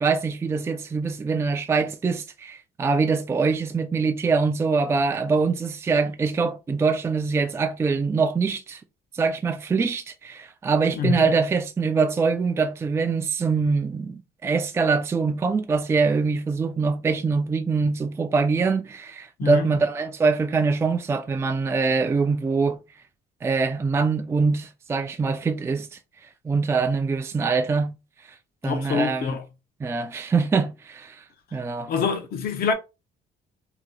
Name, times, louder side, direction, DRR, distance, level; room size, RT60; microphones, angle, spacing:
voice 1, 0.0-8.8 9.1-22.8 23.4-25.9 26.4-27.9 28.6-29.4 29.8-31.2 31.5-31.9, right 4 dB, 15° right, 0.3 m, -24 dB
voice 2, 28.6-29.4 31.9-32.7, left 6 dB, 60° left, 0.8 m, -25 dB
2.8 x 2.1 x 3.8 m
cardioid pair, 110°, 17 cm